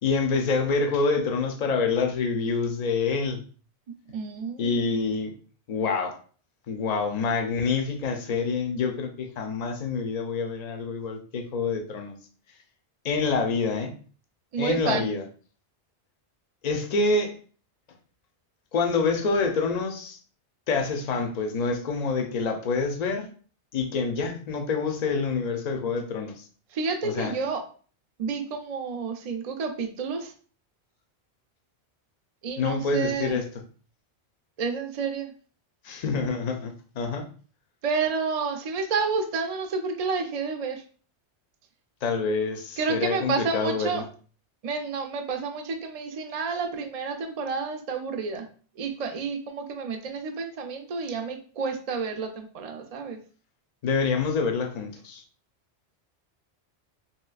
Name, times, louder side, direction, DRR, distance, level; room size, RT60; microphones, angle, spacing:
voice 1, 0.0-3.4 4.6-5.3 5.7-6.2 6.7-12.1 13.0-13.9 14.6-15.2 16.6-17.4 18.7-20.2 20.7-23.3 23.7-26.5 27.0-27.3 32.6-33.4 35.8-37.3 42.0-44.0 53.8-55.2, left 4 dB, 55° left, 0.5 m, -27 dB
voice 2, 4.1-4.9 14.5-15.1 26.7-27.6 28.2-30.3 32.4-33.4 34.6-35.3 37.8-40.8 42.8-44.0 44.6-48.5 48.8-53.2, right 5 dB, 55° right, 0.4 m, -30 dB
3.0 x 2.9 x 2.3 m
omnidirectional pair, 1.1 m